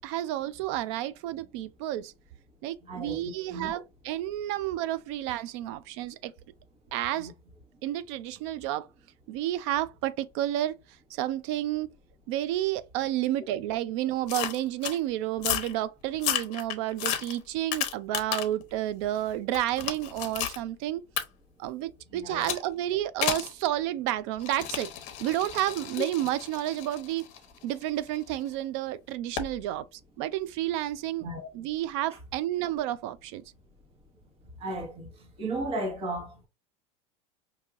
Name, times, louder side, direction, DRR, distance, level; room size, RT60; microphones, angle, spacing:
voice 1, 0.0-2.1 2.6-6.3 6.9-7.3 7.8-8.9 9.3-10.8 11.1-11.9 12.3-21.0 21.6-24.9 25.2-27.2 27.6-31.3 31.5-33.4, right 13 dB, 70° right, 0.4 m, -31 dB
voice 2, 2.9-3.8 7.2-7.3 22.1-22.5 31.2-31.5 34.6-35.1 35.4-36.5, right 1 dB, 40° right, 1.4 m, -35 dB
sound 1, 14.3-15.0 15.4-15.7 16.1-18.6 19.0-20.6 21.2-21.3 22.4-22.7 23.2-23.5 24.4-28.4 29.4-29.5, left 11 dB, 55° left, 0.8 m, -33 dB
4.6 x 2.8 x 2.4 m
supercardioid pair, 135°, 16 cm